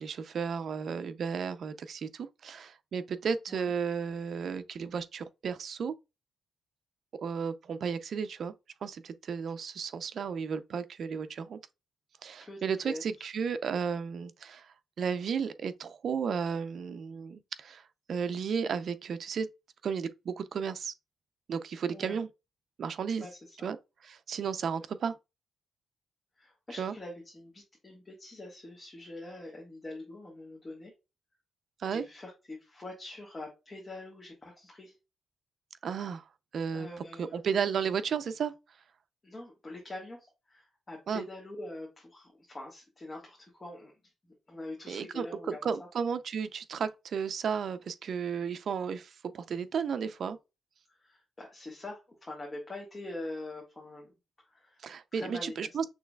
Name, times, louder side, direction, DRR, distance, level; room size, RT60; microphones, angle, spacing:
voice 1, 0.0-5.9 7.2-8.5 8.8-11.6 12.2-19.5 19.8-20.9 21.5-22.3 22.8-23.3 23.6-23.8 24.0-25.2 26.8-26.9 31.8-32.1 35.8-36.2 36.5-36.9 37.2-38.5 41.1-41.2 44.9-50.4 54.8-55.9, right 6 dB, 55° right, 0.5 m, -33 dB
voice 2, 12.4-13.3 21.9-22.2 23.2-23.7 26.4-30.9 31.9-34.9 36.7-37.4 39.2-43.9 44.5-45.7 51.0-54.1 54.4-54.8 55.1-55.9, left 2 dB, 20° left, 1.3 m, -44 dB
6.1 x 3.2 x 2.3 m
cardioid pair, 135°, 0 cm